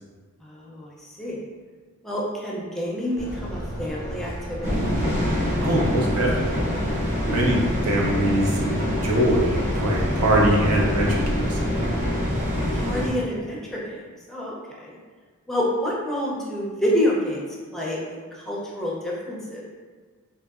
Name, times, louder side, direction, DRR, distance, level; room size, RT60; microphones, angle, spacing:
voice 1, 0.4-1.4 2.0-4.8 12.7-15.0 15.5-17.4 17.7-19.6, left 1 dB, ahead, -5 dB, 0.5 m, -28 dB
sound 1, 3.2-12.5, equal, 65° right, 1.3 m, -33 dB
sound 2, 4.6-13.1, equal, 35° right, 0.8 m, -25 dB
voice 2, 5.6-6.7 7.2-11.9, right 1 dB, 90° right, -2 dB, 0.6 m, -23 dB
3.7 x 2.5 x 2.4 m, 1.5 s
head